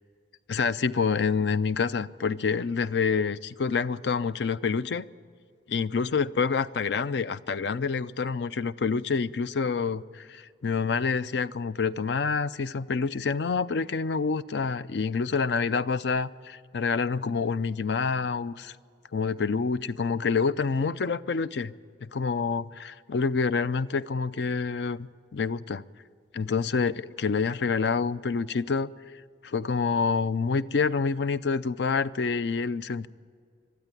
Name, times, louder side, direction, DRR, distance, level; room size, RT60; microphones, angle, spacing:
voice 1, 0.5-5.1 5.7-18.8 19.1-21.7 22.0-25.8 26.3-28.9 29.4-33.1, left 5 dB, 65° left, 16 dB, 0.5 m, -27 dB
21.0 x 13.0 x 9.7 m, 2.1 s
head